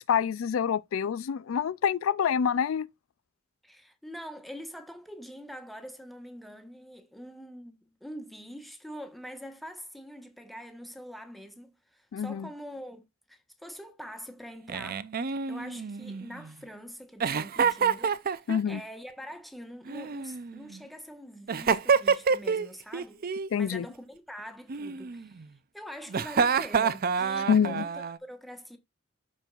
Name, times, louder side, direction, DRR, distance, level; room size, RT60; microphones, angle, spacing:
voice 1, 0.0-2.9 12.1-12.5 18.5-18.8 23.5-23.9 27.5-27.8, left 7 dB, 75° left, 0.4 m, -26 dB
voice 2, 3.6-13.0 13.3-15.1 15.5-25.4 25.7-28.8, equal, ahead, 1.2 m, -44 dB
Giggle, 14.7-16.5 17.2-18.8 19.9-20.8 21.5-22.7 22.9-23.5 24.7-25.5 26.1-28.2, right 6 dB, 45° right, 0.5 m, -28 dB
13.0 x 4.5 x 2.4 m
head